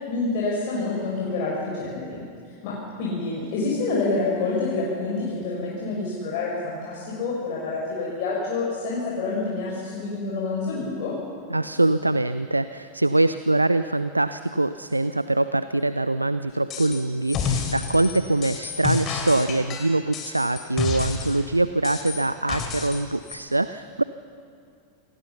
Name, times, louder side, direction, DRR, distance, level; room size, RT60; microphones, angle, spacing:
voice 1, 0.0-11.1, left 3 dB, 45° left, -5 dB, 5.4 m, -28 dB
voice 2, 11.5-24.0, right 2 dB, 85° right, 13 dB, 0.5 m, -23 dB
sound 1, 16.7-17.0 17.3-21.4 21.8-23.0 23.3-23.4, left 6 dB, 30° left, 3.7 m, -29 dB
28.0 x 20.0 x 5.8 m, 2.4 s
figure-of-eight pair, 90°, 0 cm